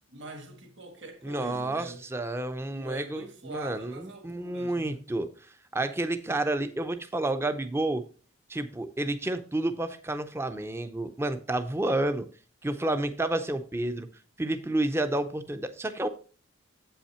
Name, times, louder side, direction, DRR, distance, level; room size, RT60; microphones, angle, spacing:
voice 1, 0.1-2.0 2.7-5.1, right 2 dB, 60° right, 1.6 m, -43 dB
voice 2, 1.2-3.2 3.5-5.3 5.7-8.0 8.5-12.3 12.6-14.1 14.4-16.1, right 2 dB, 10° right, 0.5 m, -30 dB
7.8 x 5.6 x 4.3 m
head